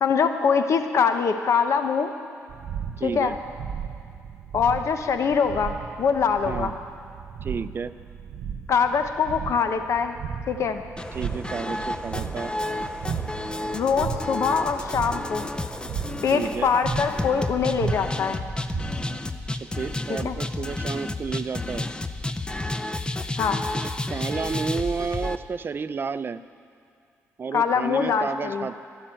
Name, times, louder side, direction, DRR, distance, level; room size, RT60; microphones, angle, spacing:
voice 1, 0.0-2.1 3.0-3.3 4.5-6.7 8.7-10.1 10.5-10.8 13.7-15.5 16.2-18.4 20.2-20.4 23.4-23.6 27.5-28.7, left 6 dB, 65° left, 7 dB, 0.9 m, -23 dB
sound 1, 2.5-19.2, right 7 dB, 80° right, 1.0 m, -36 dB
voice 2, 3.0-3.4 6.5-6.7 7.4-7.9 11.1-12.5 16.3-16.7 19.8-21.9 23.7-26.4 27.4-28.8, right 5 dB, 40° right, 13 dB, 0.5 m, -31 dB
sound 2, 11.0-25.4, left 2 dB, 15° left, 0.7 m, -31 dB
12.0 x 11.5 x 9.0 m, 2.4 s
cardioid pair, 85°, 6 cm